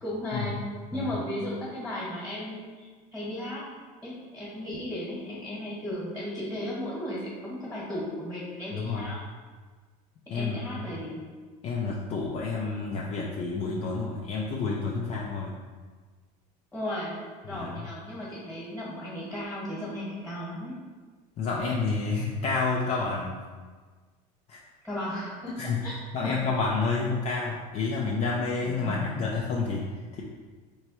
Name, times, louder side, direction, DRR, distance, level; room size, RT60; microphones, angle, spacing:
voice 1, 0.0-3.6 4.0-9.2 10.3-11.2 16.7-17.2 17.5-20.7 24.8-26.0 26.2-26.3 28.7-29.0, left 1 dB, 5° left, -6 dB, 1.2 m, -35 dB
voice 2, 8.7-9.1 10.3-10.6 11.6-15.5 17.5-17.9 21.4-23.3 24.5-24.6 25.5-30.2, left 4 dB, 35° left, -3 dB, 0.4 m, -29 dB
3.4 x 3.1 x 4.3 m, 1.5 s
cardioid pair, 140°, 18 cm